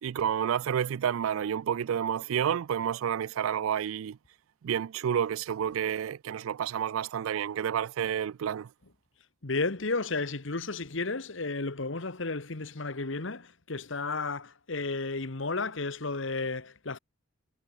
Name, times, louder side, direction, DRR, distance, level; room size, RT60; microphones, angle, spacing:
voice 1, 0.0-4.2 4.6-8.7, right 8 dB, 90° right, 0.3 m, -30 dB
voice 2, 9.4-17.0, left 3 dB, 65° left, 1.4 m, -33 dB
head